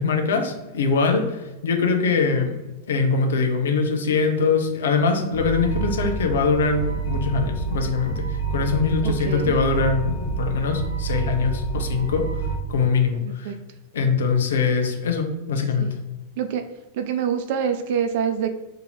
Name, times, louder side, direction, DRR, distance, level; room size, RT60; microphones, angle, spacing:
voice 1, 0.0-2.5 2.9-12.2 12.7-13.5 13.9-16.0, left 5 dB, 65° left, 4 dB, 0.5 m, -22 dB
sound 1, 5.3-12.5, right 5 dB, 90° left, 1.2 m, -28 dB
voice 2, 9.0-9.6 13.2-13.5 15.8-15.9 16.4-16.6 16.9-18.5, right 7 dB, 50° right, 7 dB, 0.3 m, -26 dB
2.7 x 2.6 x 4.2 m, 1.0 s
figure-of-eight pair, 90°, 0 cm